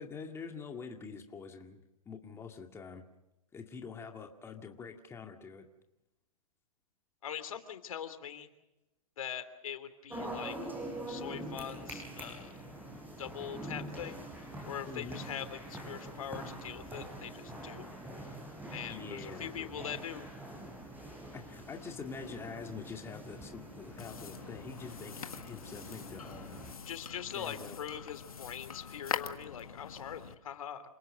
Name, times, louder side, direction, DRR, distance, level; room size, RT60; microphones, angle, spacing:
voice 1, 0.0-3.0 3.5-5.7 14.8-15.2 18.9-19.7 21.3-26.6 27.3-27.8, left 5 dB, 15° left, 3 dB, 2.1 m, -45 dB
voice 2, 7.2-8.5 9.2-10.6 11.1-12.6 13.2-14.3 14.7-17.9 18.7-20.3 26.9-30.8, left 9 dB, 70° left, 10 dB, 3.1 m, -42 dB
sound 1, 10.1-26.7, right 1 dB, 10° right, 6.4 m, -45 dB
sound 2, 24.0-30.3, left 7 dB, 90° left, 1.7 m, -43 dB
28.0 x 19.0 x 6.5 m, 0.94 s
hypercardioid pair, 130°, 18 cm